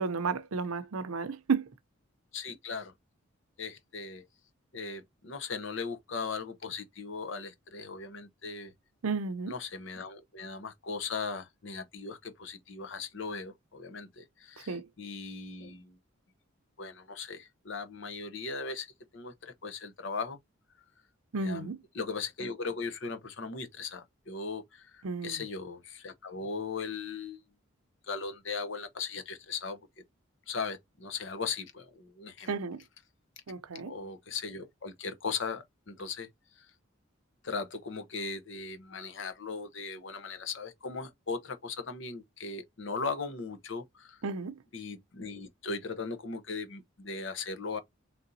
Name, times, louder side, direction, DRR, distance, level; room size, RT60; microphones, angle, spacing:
voice 1, 0.0-1.7 9.0-9.5 14.7-14.9 21.3-21.8 25.0-25.4 32.5-32.8 33.5-33.9 44.2-44.6, right 4 dB, 85° right, 0.6 m, -32 dB
voice 2, 2.3-2.9 3.6-4.2 4.7-8.7 9.5-16.0 16.8-20.4 21.4-27.4 28.1-29.8 30.5-32.5 33.8-36.3 36.6-36.7 37.4-44.2 44.7-47.8, left 4 dB, 60° left, 0.7 m, -38 dB
4.0 x 3.3 x 2.7 m
head